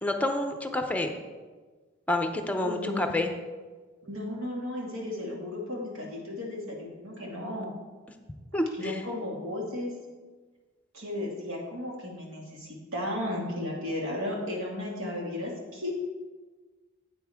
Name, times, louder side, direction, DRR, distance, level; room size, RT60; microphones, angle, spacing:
voice 1, 0.0-1.1 2.1-3.3 8.5-9.0, left 1 dB, 5° left, 5 dB, 0.6 m, -28 dB
voice 2, 2.6-3.2 4.0-7.7 8.7-9.9 10.9-15.9, left 1 dB, 85° right, -2 dB, 2.2 m, -34 dB
9.5 x 8.1 x 3.6 m, 1.4 s
head